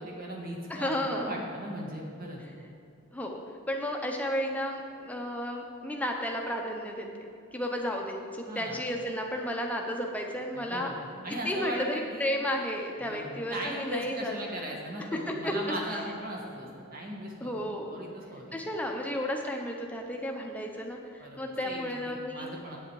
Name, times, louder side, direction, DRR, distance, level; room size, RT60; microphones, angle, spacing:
voice 1, 0.0-2.4 8.5-8.8 10.5-10.9 11.2-12.3 13.0-18.4 21.2-22.8, right 1 dB, 45° right, -1 dB, 1.7 m, -38 dB
voice 2, 0.7-1.3 3.1-3.4 3.7-7.1 7.5-10.9 11.4-14.4 15.3-15.7 17.4-18.0 18.5-22.5, equal, 5° left, 1 dB, 0.8 m, -33 dB
8.7 x 8.6 x 4.8 m, 2.5 s
head